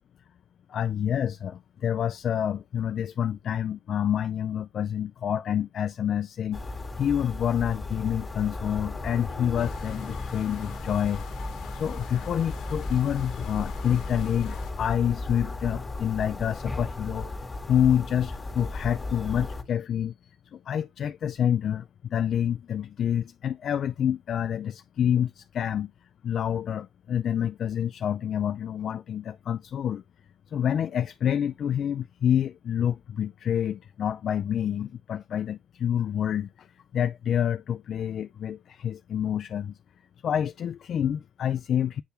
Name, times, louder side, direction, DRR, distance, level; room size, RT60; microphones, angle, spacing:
voice 1, 0.7-11.2 11.7-25.9 26.2-30.0 30.5-39.8 40.2-42.0, left 9 dB, 60° left, 0.3 m, -28 dB
sound 1, 6.5-19.6, left 2 dB, 20° left, 1.6 m, -35 dB
sound 2, 9.6-14.7, left 10 dB, 80° left, 0.8 m, -47 dB
8.2 x 3.3 x 4.3 m
cardioid pair, 90°, 0 cm